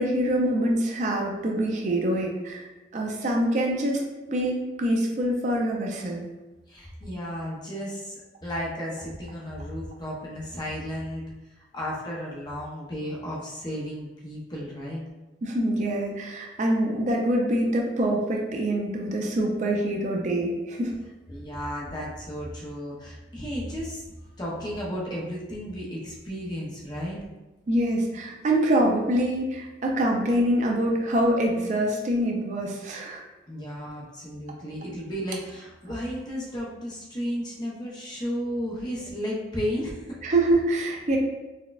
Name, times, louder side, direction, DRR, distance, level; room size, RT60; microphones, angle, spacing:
voice 1, 0.0-2.6 2.9-4.0 4.3-6.2 15.4-20.9 27.7-33.2 40.2-41.2, right 1 dB, 40° right, 0 dB, 0.4 m, -25 dB
voice 2, 6.7-11.2 11.5-15.0 21.3-24.0 24.4-27.2 33.5-40.2, equal, 25° left, -4 dB, 0.6 m, -33 dB
4.0 x 2.2 x 2.3 m, 1.1 s
head